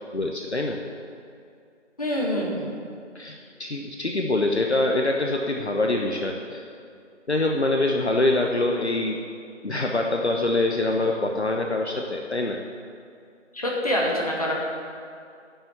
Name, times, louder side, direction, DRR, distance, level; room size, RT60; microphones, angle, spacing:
voice 1, 0.1-0.8 3.1-6.6 7.3-9.2 9.6-12.6, left 2 dB, 60° left, 1 dB, 1.1 m, -24 dB
voice 2, 2.0-2.7 13.5-14.5, equal, 30° left, -3 dB, 1.9 m, -25 dB
11.0 x 7.2 x 8.9 m, 2.4 s
figure-of-eight pair, 170°, 37 cm